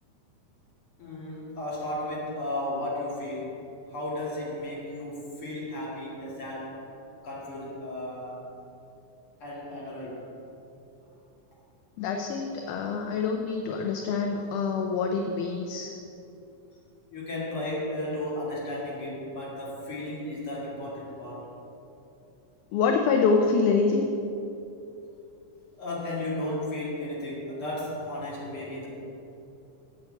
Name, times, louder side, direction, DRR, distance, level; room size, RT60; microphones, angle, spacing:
voice 1, 1.0-3.6 3.9-6.9 7.2-8.4 9.4-10.3 17.1-21.5 24.8-25.0 25.8-28.9, left 1 dB, 45° left, -6 dB, 2.6 m, -34 dB
voice 2, 12.0-15.9 22.7-24.1, left 4 dB, 80° left, 3 dB, 2.1 m, -26 dB
7.5 x 7.2 x 7.8 m, 2.9 s
omnidirectional pair, 3.8 m